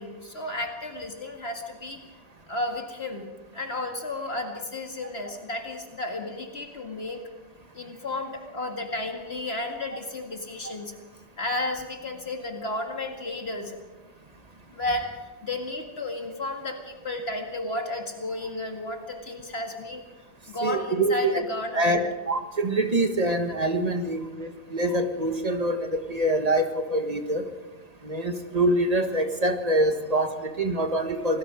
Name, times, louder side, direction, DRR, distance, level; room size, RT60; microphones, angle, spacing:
voice 1, 0.0-2.0 2.5-3.3 3.5-7.2 7.7-11.0 11.4-13.8 14.7-20.1 20.5-22.1, left 2 dB, 60° left, 4 dB, 2.2 m, -33 dB
voice 2, 20.6-21.4 21.7-22.0 22.3-27.4 28.0-31.4, right 1 dB, 35° right, 6 dB, 1.7 m, -25 dB
27.0 x 19.5 x 5.1 m, 1.2 s
omnidirectional pair, 1.2 m